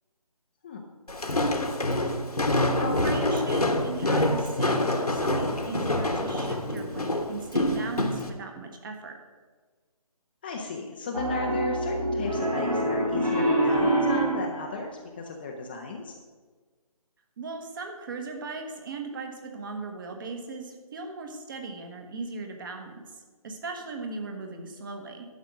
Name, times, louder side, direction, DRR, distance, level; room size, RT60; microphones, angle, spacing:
Walk footsteps, 1.1-8.3, left 1 dB, 85° left, 1.4 m, -26 dB
voice 1, 2.8-9.2 17.4-23.0 23.4-25.3, right 3 dB, 35° right, 4 dB, 1.3 m, -38 dB
voice 2, 10.4-16.1, left 3 dB, 15° left, 0 dB, 0.5 m, -34 dB
Piano, 11.1-14.6, right 1 dB, 80° right, 2.5 m, -25 dB
11.5 x 5.1 x 6.3 m, 1.4 s
figure-of-eight pair, 150°, 19 cm